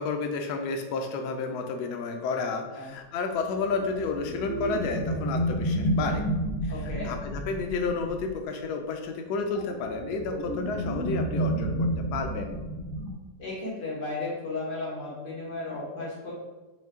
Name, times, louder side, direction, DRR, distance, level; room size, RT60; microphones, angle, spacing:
voice 1, 0.0-6.2 6.6-12.6, left 4 dB, 70° left, 5 dB, 1.1 m, -31 dB
sound 1, 3.3-8.4 9.4-13.1, right 1 dB, 25° left, 0.6 m, -31 dB
voice 2, 6.7-7.1 13.4-16.3, left 2 dB, 90° left, -5 dB, 2.2 m, -34 dB
4.4 x 3.2 x 3.6 m, 1.2 s
omnidirectional pair, 1.9 m